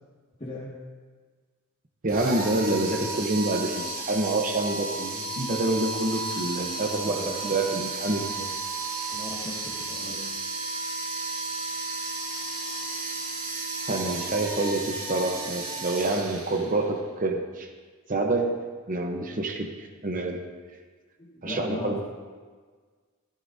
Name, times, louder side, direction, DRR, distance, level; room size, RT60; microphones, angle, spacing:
voice 1, 0.4-0.7 7.0-7.4 9.1-10.3 15.7-15.8 21.2-22.0, left 1 dB, 30° left, -6 dB, 1.9 m, -37 dB
voice 2, 2.0-8.5 13.9-17.7 18.1-20.4 21.4-22.0, right 2 dB, 40° right, 3 dB, 0.9 m, -27 dB
sound 1, 2.1-17.0, right 3 dB, 85° right, 2.5 m, -33 dB
16.5 x 15.0 x 2.7 m, 1.5 s
head